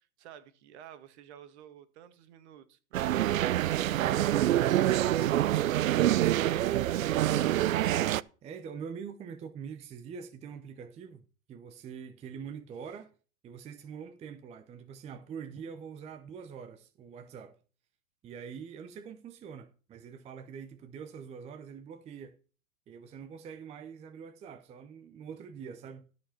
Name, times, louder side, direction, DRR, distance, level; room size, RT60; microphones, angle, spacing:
voice 1, 0.2-7.8 12.9-13.0, right 10 dB, 50° right, 1.7 m, -51 dB
sound 1, 2.9-8.2, right 13 dB, 70° right, 0.6 m, -26 dB
voice 2, 8.4-11.2 11.5-13.1 13.4-17.6 18.2-22.4 22.9-26.0, right 6 dB, 15° right, 0.7 m, -44 dB
13.0 x 5.1 x 5.7 m
hypercardioid pair, 115°, 42 cm